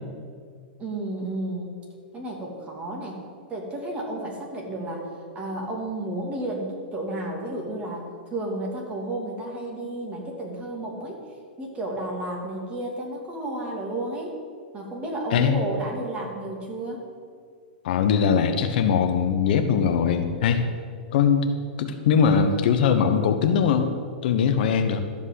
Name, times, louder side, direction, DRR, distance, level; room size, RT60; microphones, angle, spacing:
voice 1, 0.8-1.7 2.1-3.2 3.5-5.1 5.3-11.2 11.6-14.3 14.7-17.0, right 1 dB, 20° right, -1 dB, 2.8 m, -32 dB
voice 2, 17.8-20.6 21.1-21.5 21.8-23.9 24.2-25.0, left 7 dB, 65° left, 8 dB, 1.0 m, -21 dB
13.0 x 5.4 x 8.1 m, 2.1 s
hypercardioid pair, 130°, 5 cm